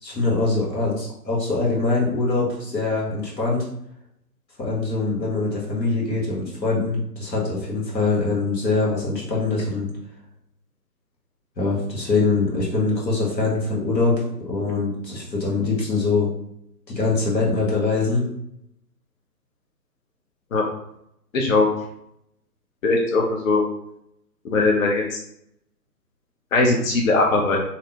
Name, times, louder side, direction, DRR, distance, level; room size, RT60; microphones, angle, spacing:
voice 1, 0.0-3.7 4.6-9.9 11.6-16.3 16.9-18.2, left 3 dB, 90° left, -3 dB, 1.2 m, -23 dB
voice 2, 21.3-21.7 22.8-23.6 24.4-25.1 26.5-27.6, left 3 dB, 55° left, 0 dB, 0.5 m, -19 dB
2.6 x 2.1 x 2.7 m, 0.76 s
figure-of-eight pair, 140°, 49 cm